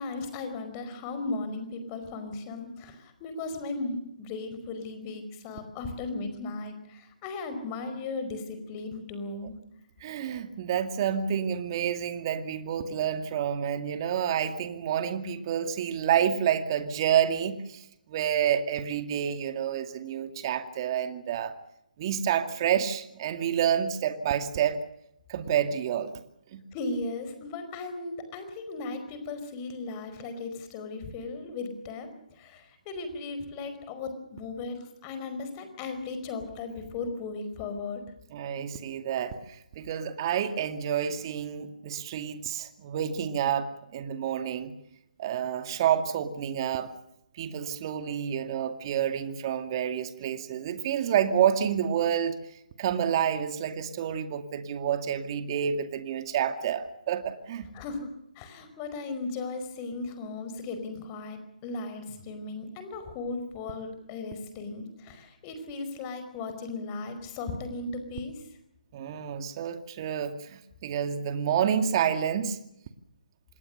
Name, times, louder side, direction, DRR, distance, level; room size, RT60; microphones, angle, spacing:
voice 1, 0.0-9.5 26.7-38.0 57.7-68.4, left 3 dB, 25° left, 8 dB, 4.9 m, -36 dB
voice 2, 10.0-21.5 22.0-24.8 25.3-26.1 26.5-26.6 38.3-44.7 45.2-46.9 47.3-52.4 52.8-57.7 68.9-72.6, right 9 dB, 35° right, 8 dB, 2.2 m, -29 dB
27.0 x 20.0 x 6.6 m, 0.79 s
figure-of-eight pair, 145°, 4 cm